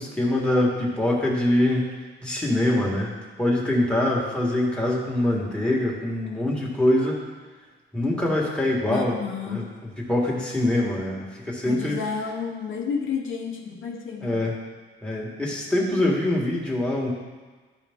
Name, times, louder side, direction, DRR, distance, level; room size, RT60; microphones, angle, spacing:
voice 1, 0.0-1.9 2.2-3.1 3.4-7.2 7.9-9.1 9.4-12.0 14.2-14.5 15.0-17.1, left 1 dB, 5° left, -3 dB, 1.6 m, -24 dB
voice 2, 8.9-9.7 11.6-14.5, left 6 dB, 75° left, 1 dB, 1.0 m, -31 dB
12.0 x 5.0 x 3.6 m, 1.3 s
cardioid pair, 120°, 20 cm